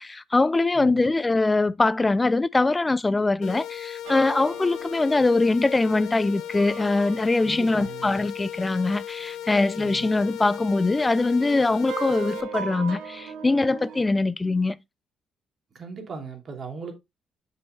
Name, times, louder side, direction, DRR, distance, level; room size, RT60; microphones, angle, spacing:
voice 1, 0.0-14.8, left 3 dB, 20° left, 0.5 m, -22 dB
voice 2, 0.8-1.1 7.4-8.1 9.7-10.1 15.7-16.9, right 5 dB, 50° right, 2.6 m, -38 dB
sound 1, 3.4-12.4, left 11 dB, 85° left, 0.7 m, -37 dB
sound 2, 4.0-9.2 9.6-9.7 10.3-14.0, right 7 dB, 90° right, 1.3 m, -39 dB
7.1 x 5.6 x 3.3 m
cardioid pair, 90°, 0 cm